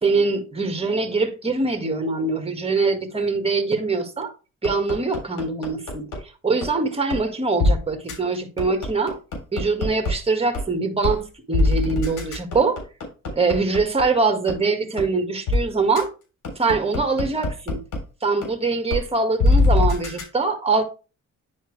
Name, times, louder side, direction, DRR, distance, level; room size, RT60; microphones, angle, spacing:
voice 1, 0.0-4.3 4.6-6.1 6.4-9.2 9.5-12.8 13.3-16.1 16.6-17.8 18.2-20.8, right 3 dB, 20° right, 1.8 m, -23 dB
sound 1, 4.6-6.2 6.6-6.7 7.1-7.2 7.6-7.7 8.1-8.2 8.6-10.1 10.5-10.6 11.0-11.2 11.5-14.0 14.5-14.6 15.0-15.1 15.5-15.6 16.0-16.1 16.4-18.0 18.4-18.5 18.9-19.0 19.4-20.2, left 2 dB, 75° left, 3.5 m, -21 dB
9.7 x 4.4 x 3.3 m
cardioid pair, 90°, 30 cm